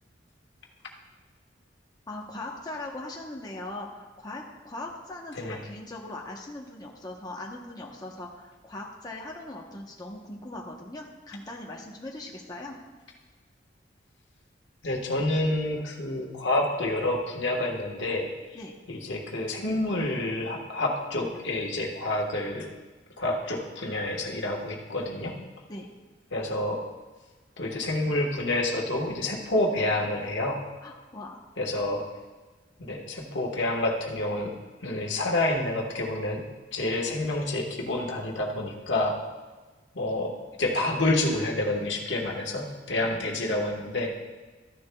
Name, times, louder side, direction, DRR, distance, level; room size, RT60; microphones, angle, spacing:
voice 1, 2.1-12.8 18.5-18.7 25.7-25.9 30.8-31.4 43.0-43.3, left 2 dB, 20° left, -1 dB, 0.9 m, -40 dB
voice 2, 14.8-18.3 18.9-22.7 23.2-25.4 26.3-26.8 27.6-30.6 31.6-32.1 32.8-34.5 34.8-36.5 36.7-39.2 39.9-44.1, left 1 dB, 70° left, 1 dB, 1.4 m, -28 dB
13.5 x 10.0 x 2.3 m, 1.3 s
head